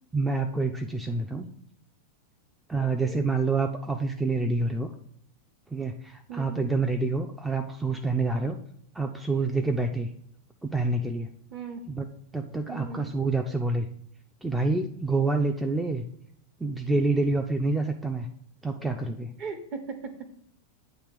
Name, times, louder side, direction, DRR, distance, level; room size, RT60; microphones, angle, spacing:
voice 1, 0.1-1.5 2.7-4.9 5.7-8.6 8.9-10.1 10.6-11.3 11.9-12.1 12.3-13.9 14.4-16.0 16.6-18.3 18.6-19.3, right 3 dB, 5° right, 3 dB, 0.4 m, -27 dB
voice 2, 2.8-3.2 6.3-6.7 11.5-11.8 12.7-13.1 19.4-20.1, right 5 dB, 40° right, 7 dB, 1.0 m, -38 dB
8.8 x 3.0 x 6.2 m, 0.67 s
figure-of-eight pair, 90°, 0 cm